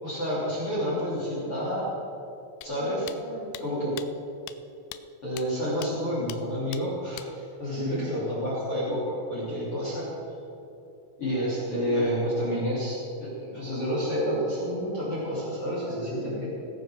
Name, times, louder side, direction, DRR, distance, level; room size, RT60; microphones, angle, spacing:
voice 1, 0.0-1.8 2.6-3.1 3.6-3.9 5.2-9.0 9.3-10.1 11.2-16.3, equal, 30° left, -8 dB, 3.1 m, -29 dB
sound 1, 2.6-2.7 3.1-3.2 3.5-3.6 4.0-4.1 4.5-4.6 4.9-5.0 5.4-5.5 5.8-5.9 6.3-6.4 6.7-6.8 7.2-7.3, left 15 dB, 85° left, 3.3 m, -40 dB
voice 2, 2.9-3.7 7.8-8.1 11.7-12.2 15.7-16.5, right 2 dB, 55° right, -5 dB, 4.7 m, -39 dB
19.0 x 7.4 x 6.2 m, 2.8 s
omnidirectional pair, 5.9 m